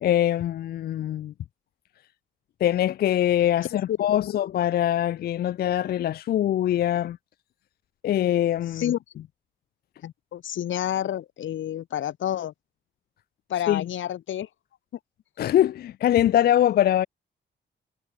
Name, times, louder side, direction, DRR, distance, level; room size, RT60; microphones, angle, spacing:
voice 1, 0.0-1.3 2.6-7.2 8.0-8.8 13.7-13.8 15.4-17.1, left 11 dB, 55° left, 0.4 m, -23 dB
voice 2, 3.7-4.4 8.7-9.0 10.0-12.5 13.5-14.5, left 11 dB, 85° left, 3.2 m, -29 dB
wide cardioid pair, 180°, 20 cm